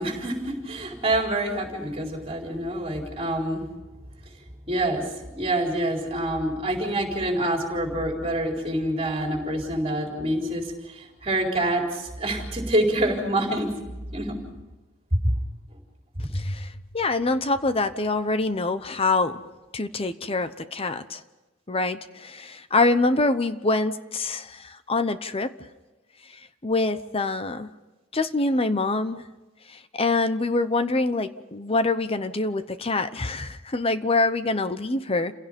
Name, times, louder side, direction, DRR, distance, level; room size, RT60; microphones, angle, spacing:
voice 1, 0.0-3.7 4.7-5.1 5.4-13.7 14.1-14.4 15.2-15.3, right 1 dB, 30° right, 0 dB, 4.2 m, -26 dB
voice 2, 16.3-19.4 19.7-21.2 21.7-25.5 26.6-27.7 28.1-29.2 29.9-35.3, left 3 dB, 30° left, 11 dB, 0.8 m, -25 dB
29.5 x 17.0 x 5.3 m, 1.1 s
head